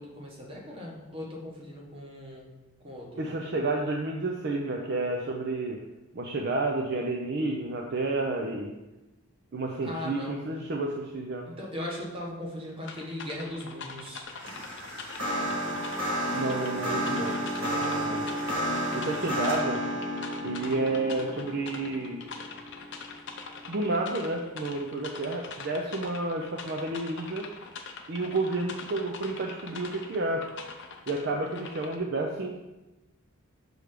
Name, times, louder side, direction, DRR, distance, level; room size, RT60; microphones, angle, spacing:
voice 1, 0.0-2.5 2.8-3.2 9.8-10.4 11.5-14.2 19.0-19.1, left 1 dB, 25° right, -3 dB, 1.2 m, -38 dB
voice 2, 3.2-5.8 6.1-8.7 9.5-11.5 16.3-18.3 18.9-19.8 20.4-22.2 23.7-27.5 28.1-30.5 31.1-32.6, right 2 dB, 50° right, 1 dB, 0.5 m, -30 dB
sound 1, 12.8-32.0, left 4 dB, 55° left, 0.6 m, -43 dB
sound 2, 14.3-23.6, equal, 70° right, 1.7 m, -32 dB
6.2 x 3.3 x 5.0 m, 1.0 s
head